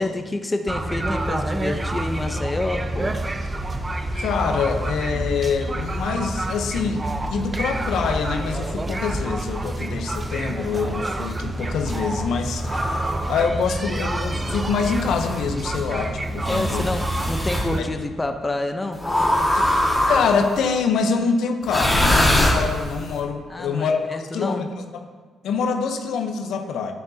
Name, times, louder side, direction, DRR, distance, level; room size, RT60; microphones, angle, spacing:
voice 1, 0.0-3.1 16.5-19.7 23.5-24.7, left 2 dB, 20° left, 6 dB, 0.6 m, -28 dB
sound 1, 0.7-17.8, right 1 dB, 25° right, 0.6 m, -28 dB
voice 2, 4.1-12.7 13.3-16.9 17.8-17.9 19.5-19.8 20.1-24.0 24.3-24.7 25.4-26.9, left 5 dB, 75° left, 6 dB, 0.7 m, -25 dB
sound 2, 12.6-13.3 14.2-15.4 16.4-17.7 19.0-20.5 21.6-23.1, left 1 dB, ahead, 1.7 m, -22 dB
9.4 x 9.2 x 2.7 m, 1.5 s
cardioid pair, 90°, 0 cm